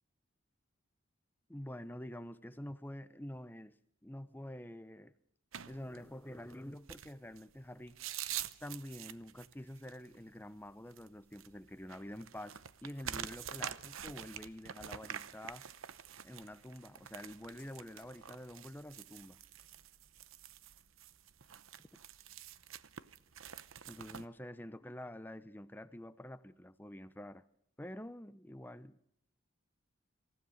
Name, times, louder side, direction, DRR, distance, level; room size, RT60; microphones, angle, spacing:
voice 1, 1.5-3.7 4.0-5.1 5.7-8.0 8.6-15.7 16.2-19.4 23.9-27.4 27.8-29.0, left 1 dB, 10° left, 0.8 m, -47 dB
sound 1, 5.5-24.3, right 9 dB, 85° right, 0.9 m, -47 dB
sound 2, 13.5-21.4, left 6 dB, 25° left, 3.7 m, -75 dB
27.0 x 16.0 x 6.3 m
head